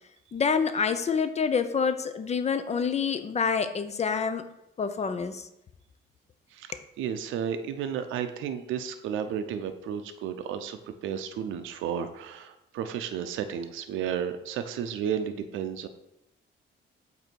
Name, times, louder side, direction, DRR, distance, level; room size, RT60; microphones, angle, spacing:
voice 1, 0.3-4.4 4.8-5.5, left 6 dB, 35° left, 10 dB, 0.4 m, -27 dB
voice 2, 6.5-15.9, right 8 dB, 80° right, 9 dB, 0.5 m, -33 dB
7.8 x 2.7 x 4.5 m, 0.85 s
cardioid pair, 90°, 20 cm